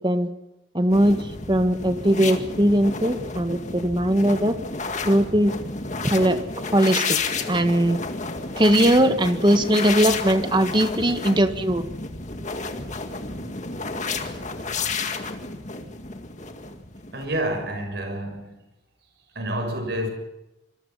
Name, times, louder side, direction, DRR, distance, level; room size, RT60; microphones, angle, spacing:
voice 1, 0.7-1.2 1.5-4.6 5.1-5.5 6.0-6.4 6.7-7.2 7.5-8.0 8.6-11.9, right 1 dB, 25° right, 8 dB, 1.7 m, -20 dB
sound 1, 0.9-17.6, left 4 dB, 40° left, 2.0 m, -31 dB
voice 2, 17.1-18.6 19.3-20.1, right 1 dB, 60° right, 5 dB, 6.6 m, -28 dB
26.5 x 23.5 x 5.8 m, 0.94 s
head